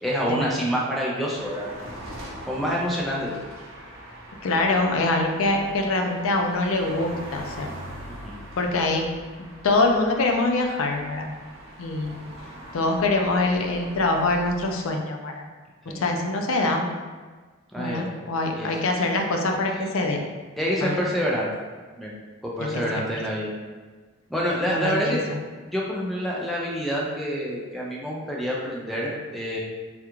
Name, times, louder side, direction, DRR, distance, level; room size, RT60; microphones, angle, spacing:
voice 1, 0.0-1.7 2.5-3.4 8.1-8.4 15.9-16.1 17.7-18.1 18.5-18.8 20.6-21.5 22.0-22.1 22.4-23.6 24.3-25.2 25.7-29.6, equal, ahead, -4 dB, 0.4 m, -27 dB
sound 1, 1.3-14.7, right 1 dB, 65° right, 0.7 m, -42 dB
voice 2, 4.4-7.7 8.6-9.0 9.6-11.3 11.8-12.2 12.7-15.4 15.9-16.9 17.8-20.2 20.8-21.0 22.7-23.0 24.7-25.2, left 2 dB, 75° left, 3 dB, 0.4 m, -24 dB
3.4 x 2.3 x 2.9 m, 1.4 s
head